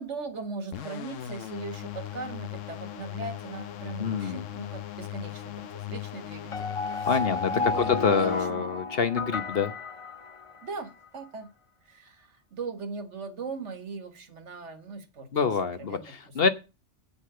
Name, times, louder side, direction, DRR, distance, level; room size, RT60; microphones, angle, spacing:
voice 1, 0.0-9.0 10.6-11.5 11.9-15.3 15.7-16.5, right 4 dB, 70° right, 10 dB, 1.8 m, -40 dB
sound 1, 0.7-8.4, left 12 dB, 90° left, 1.1 m, -38 dB
voice 2, 4.0-4.4 7.1-9.7 15.3-16.5, left 5 dB, 55° left, 11 dB, 1.2 m, -26 dB
sound 2, 6.5-10.8, left 4 dB, 35° left, 0.6 m, -32 dB
9.5 x 7.0 x 6.7 m, 0.29 s
omnidirectional pair, 1.3 m